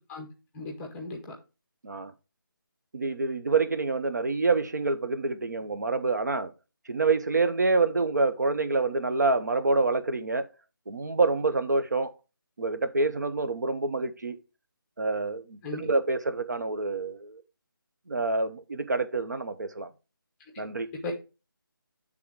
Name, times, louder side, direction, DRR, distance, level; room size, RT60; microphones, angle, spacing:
voice 1, 0.5-1.3 15.6-15.9 21.0-21.1, left 3 dB, 5° left, 0.7 m, -36 dB
voice 2, 2.9-6.5 6.9-10.4 10.9-12.1 12.6-14.4 15.0-17.4 18.1-19.9 20.6-20.9, right 3 dB, 55° right, 0.7 m, -27 dB
8.2 x 3.6 x 4.9 m
figure-of-eight pair, 155°, 12 cm